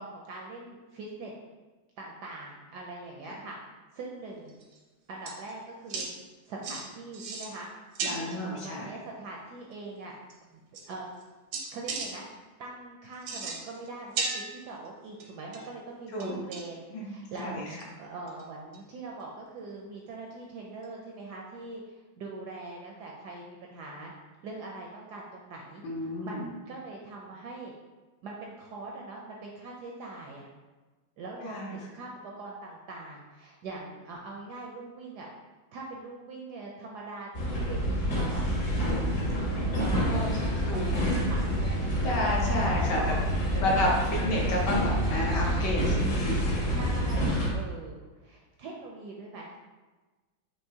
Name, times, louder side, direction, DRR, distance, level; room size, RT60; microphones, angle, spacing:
voice 1, 0.0-1.4 2.0-3.6 3.9-4.5 5.1-6.1 6.5-7.7 8.0-10.2 10.5-11.1 11.7-17.6 18.0-24.1 24.4-27.7 28.2-30.5 31.2-35.3 35.7-38.4 39.8-42.3 42.8-43.8 45.1-45.2 46.7-47.9 48.2-49.5, right 3 dB, 75° right, -1 dB, 0.9 m, -42 dB
sound 1, 4.5-4.8 5.3-5.5 5.9-6.1 6.6-6.8 7.1-7.6 7.9-8.4 9.7-9.8 10.3-10.4 10.7-11.2 11.5-12.1 13.1-13.9 14.1-14.9 15.2-15.7 16.2-16.8 17.4-17.5 17.8-17.9 18.3-18.4 18.7-18.8 20.8-20.9, right 4 dB, 90° right, 1.5 m, -35 dB
voice 2, 8.1-8.9 16.1-16.4 16.9-17.1 17.4-17.7 25.8-26.5 31.4-31.7 40.1-40.3 40.7-41.2 42.0-43.0 43.6-46.8, left 1 dB, 65° left, -3 dB, 1.4 m, -30 dB
sound 2, 37.3-47.5, equal, 45° left, 1.2 m, -28 dB
5.5 x 2.8 x 2.7 m, 1.3 s
omnidirectional pair, 2.1 m